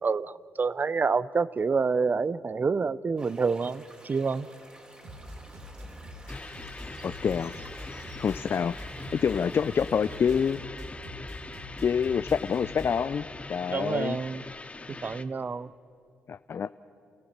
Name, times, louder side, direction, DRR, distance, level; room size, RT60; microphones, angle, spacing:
voice 1, 0.0-4.5 13.7-14.4 14.9-15.7, right 4 dB, 35° right, 19 dB, 0.5 m, -28 dB
sound 1, 3.2-10.5, right 1 dB, 20° right, 3.0 m, -51 dB
sound 2, 5.0-13.0, left 1 dB, 80° right, 4.0 m, -44 dB
sound 3, 6.3-15.2, left 3 dB, 25° left, 1.1 m, -42 dB
voice 2, 7.0-7.5 8.2-8.7 9.2-10.6 11.8-14.2 16.3-16.7, left 7 dB, 50° left, 13 dB, 0.4 m, -27 dB
29.0 x 15.0 x 7.4 m, 2.7 s
cardioid pair, 70°, 5 cm